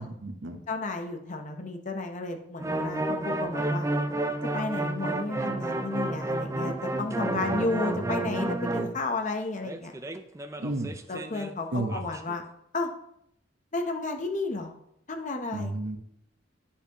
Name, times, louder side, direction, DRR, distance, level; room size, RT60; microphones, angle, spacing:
voice 1, 0.0-0.6 7.3-7.5 10.6-10.9 11.7-12.0 15.5-16.0, right 2 dB, 85° right, 5 dB, 1.0 m, -32 dB
voice 2, 0.7-3.9 4.5-9.9 11.1-12.4 12.7-12.9 13.7-14.7 15.1-15.7, left 3 dB, 40° left, 4 dB, 0.9 m, -32 dB
sound 1, 2.6-9.0 9.6-11.5 11.9-12.4, right 2 dB, 15° right, 0.4 m, -31 dB
10.0 x 5.7 x 3.0 m, 0.74 s
head